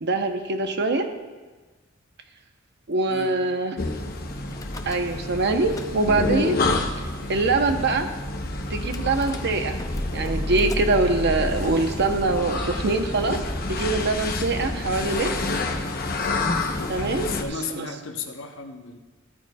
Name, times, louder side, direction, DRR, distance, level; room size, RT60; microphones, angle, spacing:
voice 1, 0.0-1.1 2.9-3.8 4.9-6.6 7.3-8.1 8.7-9.8 10.1-13.4 13.7-15.3 16.9-18.0, right 3 dB, 55° right, 6 dB, 0.9 m, -24 dB
voice 2, 3.1-3.4 17.2-19.0, left 4 dB, 65° left, 4 dB, 1.0 m, -34 dB
sound 1, 3.8-17.4, left 2 dB, 45° left, 0.9 m, -29 dB
Car / Engine starting / Idling, 4.5-5.3 5.6-6.3 7.0-7.1 7.3-7.4 7.7-8.0 8.9-15.1, left 1 dB, 15° left, 0.6 m, -33 dB
14.5 x 13.5 x 2.4 m, 1.2 s
head